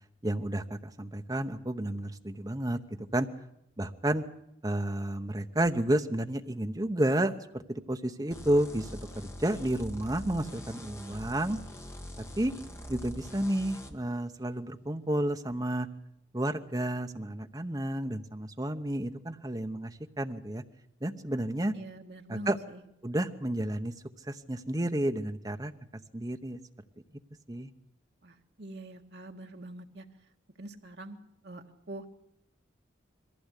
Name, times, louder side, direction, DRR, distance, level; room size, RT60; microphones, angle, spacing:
voice 1, 0.2-2.8 3.1-3.3 3.8-4.2 4.6-11.6 12.4-12.5 12.9-15.9 16.3-20.6 21.0-21.7 22.3-22.6 23.0-23.9 24.3-25.7 26.1-26.6 27.5-27.7, right 1 dB, 20° right, 6 dB, 0.8 m, -31 dB
sound 1, 8.3-13.9, equal, 15° left, 1.3 m, -43 dB
voice 2, 21.7-22.8 28.2-30.0 30.6-31.2 31.4-32.1, right 1 dB, 60° right, 3 dB, 1.6 m, -44 dB
22.0 x 15.5 x 8.3 m, 0.79 s
head